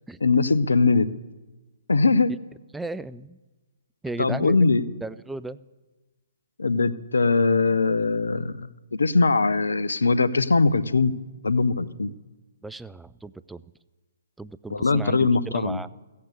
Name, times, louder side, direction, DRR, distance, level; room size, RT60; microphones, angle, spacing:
voice 1, 0.2-1.1 1.9-2.3 4.2-4.8 6.6-11.1 11.4-12.1 14.7-15.8, left 3 dB, 75° left, 15 dB, 0.7 m, -21 dB
voice 2, 2.7-3.4 4.0-4.6 5.0-5.6 12.6-13.6 14.4-15.9, right 2 dB, 5° right, 16 dB, 0.4 m, -35 dB
14.5 x 8.5 x 8.2 m, 1.2 s
figure-of-eight pair, 130°, 0 cm